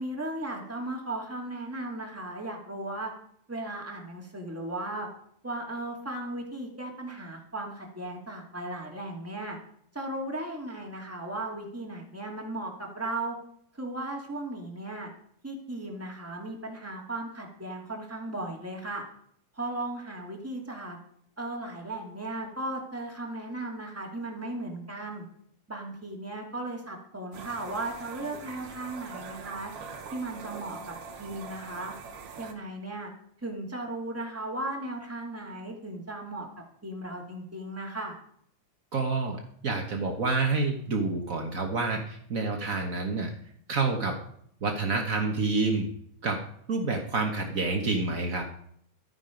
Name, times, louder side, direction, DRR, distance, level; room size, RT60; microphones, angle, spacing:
voice 1, 0.0-3.1 3.5-5.1 5.4-9.6 9.9-13.4 13.8-15.1 15.4-19.0 19.5-21.0 21.4-25.2 25.7-29.7 30.1-30.8 31.2-31.9 32.4-33.1 33.4-36.5 36.8-38.1, right 2 dB, 5° right, 0 dB, 1.9 m, -36 dB
sound 1, 27.3-32.5, right 5 dB, 55° right, 2.1 m, -43 dB
voice 2, 38.9-43.3 43.7-44.2 44.6-45.9 46.2-46.4 46.7-48.4, right 3 dB, 80° right, 2 dB, 0.7 m, -28 dB
13.0 x 9.7 x 5.2 m, 0.65 s
omnidirectional pair, 3.6 m